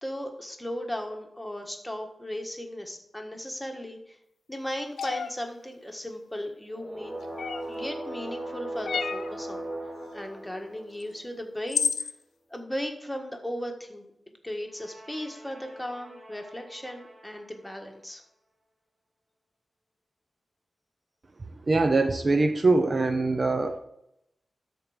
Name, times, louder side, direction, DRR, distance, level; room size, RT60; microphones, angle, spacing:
voice 1, 0.0-4.2 4.5-7.1 7.7-9.7 10.1-12.1 12.5-14.1 14.4-18.2, equal, 10° left, 3 dB, 1.5 m, -36 dB
sound 1, 5.0-5.3 7.4-7.8 8.9-9.3 11.0-11.1 11.7-12.1, left 6 dB, 85° left, 0.5 m, -29 dB
sound 2, 6.7-11.3 14.7-17.5, right 1 dB, 20° right, 1.8 m, -39 dB
voice 2, 21.7-23.8, right 3 dB, 45° right, 7 dB, 0.7 m, -23 dB
12.5 x 4.6 x 5.0 m, 0.80 s
wide cardioid pair, 85°, 0 cm